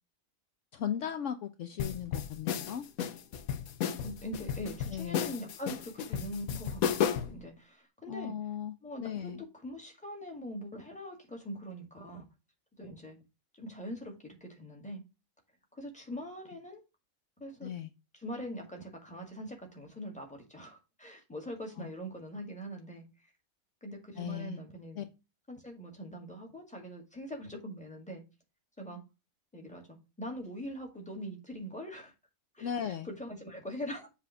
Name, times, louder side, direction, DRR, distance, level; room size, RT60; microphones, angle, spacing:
voice 1, 0.7-2.9 4.9-5.3 8.1-8.7 9.0-9.4 17.6-17.9 21.8-21.9 24.2-24.6 24.9-25.0 32.6-33.1, left 9 dB, 65° left, 0.9 m, -37 dB
sound 1, 1.8-7.4, left 8 dB, 80° left, 1.2 m, -33 dB
voice 2, 4.0-8.3 8.8-9.4 9.6-12.3 12.8-13.2 13.5-15.0 15.7-16.8 17.4-17.7 18.1-23.0 23.8-25.1 25.5-28.2 28.8-29.0 29.5-32.1 32.5-34.1, equal, 5° left, 1.9 m, -42 dB
7.3 x 3.5 x 5.8 m
omnidirectional pair, 1.5 m